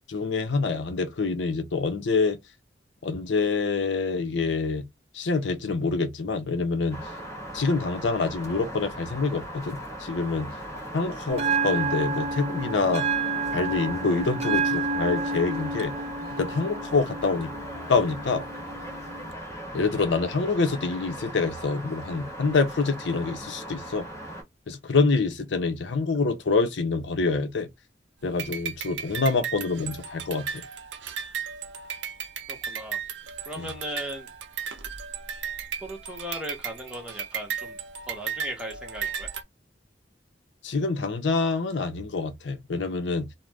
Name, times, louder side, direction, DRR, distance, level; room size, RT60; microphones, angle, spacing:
voice 1, 0.1-2.4 3.0-4.8 5.1-7.0 7.5-10.5 10.9-13.0 13.5-15.9 16.4-17.5 17.9-18.4 19.7-24.1 24.7-27.7 28.2-30.6 33.6-33.7 40.6-43.3, left 4 dB, 75° left, 0.6 m, -26 dB
sound 1, 6.9-24.4, right 1 dB, 15° left, 1.2 m, -38 dB
Bell, 11.3-19.3, right 4 dB, 35° right, 0.4 m, -30 dB
sound 2, 28.4-39.4, right 7 dB, 80° right, 0.6 m, -35 dB
voice 2, 32.5-33.0 33.5-34.3 35.8-37.8 38.1-39.3, right 1 dB, 5° right, 1.0 m, -37 dB
2.5 x 2.1 x 3.2 m
head